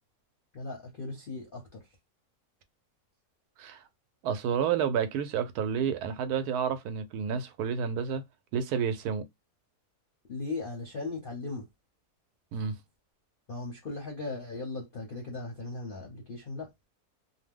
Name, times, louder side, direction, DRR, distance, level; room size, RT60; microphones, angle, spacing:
voice 1, 0.5-1.9 10.3-11.7 13.5-16.7, left 3 dB, 50° left, 0.6 m, -38 dB
voice 2, 4.2-8.2 8.5-9.2 12.5-12.8, right 7 dB, 80° right, 1.1 m, -30 dB
2.6 x 2.0 x 3.4 m
omnidirectional pair, 1.7 m